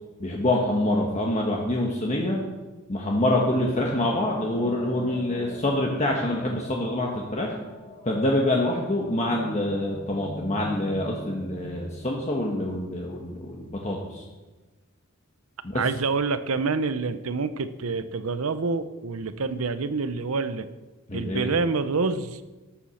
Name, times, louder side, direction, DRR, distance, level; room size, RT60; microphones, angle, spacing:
voice 1, 0.2-2.4 2.9-7.5 8.0-14.2 15.6-15.8 21.1-21.5, left 1 dB, 30° left, -1 dB, 1.2 m, -26 dB
sound 1, 3.5-13.7, left 1 dB, 50° left, 2.0 m, -41 dB
voice 2, 15.7-20.7 21.1-22.4, right 4 dB, 80° right, 12 dB, 0.7 m, -27 dB
13.0 x 7.2 x 6.5 m, 1.2 s
head